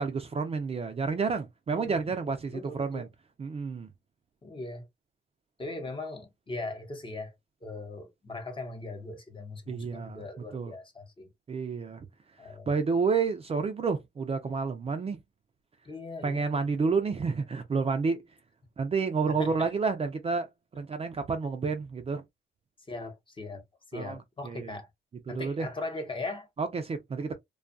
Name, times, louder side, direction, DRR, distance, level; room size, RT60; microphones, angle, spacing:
voice 1, 0.0-3.1 3.4-3.9 9.7-10.2 10.5-10.7 11.5-12.1 12.7-15.2 16.2-18.2 18.8-22.2 23.9-24.2 24.4-24.7 25.3-25.7 26.6-27.3, right 4 dB, 30° right, 0.5 m, -30 dB
voice 2, 1.7-2.2 2.5-3.0 4.4-4.9 5.6-7.3 7.6-11.3 12.4-12.7 15.8-16.5 19.4-19.7 22.9-23.6 23.9-24.9 25.3-26.5, left 2 dB, 25° left, 0.8 m, -39 dB
2.3 x 2.3 x 2.5 m
cardioid pair, 90°, 20 cm